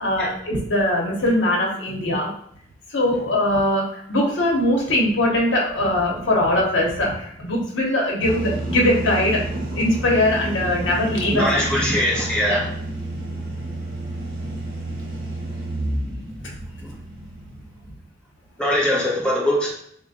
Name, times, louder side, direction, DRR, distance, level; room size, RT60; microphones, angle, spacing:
voice 1, 0.0-2.3 2.9-9.4 9.7-11.5 12.5-12.6, left 1 dB, 90° left, -2 dB, 0.8 m, -21 dB
sound 1, 8.2-17.9, right 1 dB, 50° right, 0.9 m, -30 dB
voice 2, 11.3-12.6 18.6-19.7, left 1 dB, 5° left, -5 dB, 0.8 m, -21 dB
3.3 x 2.1 x 3.9 m, 0.67 s
head